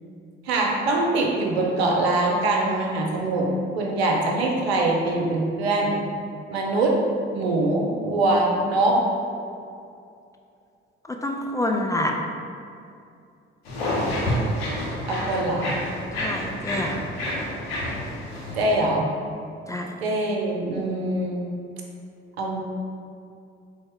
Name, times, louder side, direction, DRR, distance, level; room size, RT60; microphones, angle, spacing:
voice 1, 0.5-3.5 3.8-6.0 6.5-7.0 7.3-9.0 15.1-15.8 18.6-19.1 20.0-21.5 22.4-22.6, right 2 dB, 80° right, -1 dB, 0.6 m, -23 dB
voice 2, 11.2-12.1 16.2-17.0 19.7-19.9, left 1 dB, 10° left, 2 dB, 0.4 m, -27 dB
sound 1, 13.6-18.8, left 1 dB, 80° left, 0.8 m, -28 dB
4.0 x 3.3 x 3.6 m, 2.5 s
figure-of-eight pair, 45°, 31 cm